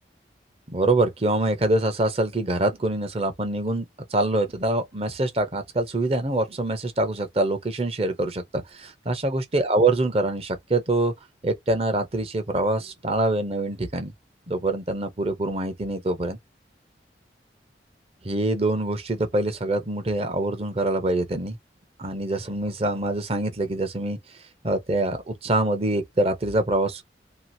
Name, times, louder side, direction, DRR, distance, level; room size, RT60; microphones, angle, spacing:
voice 1, 0.7-3.9 4.1-11.1 11.4-14.1 14.5-16.4 18.2-21.6 22.0-24.2 24.6-27.0, right 2 dB, 35° right, 0.7 m, -25 dB
2.9 x 2.4 x 2.6 m
head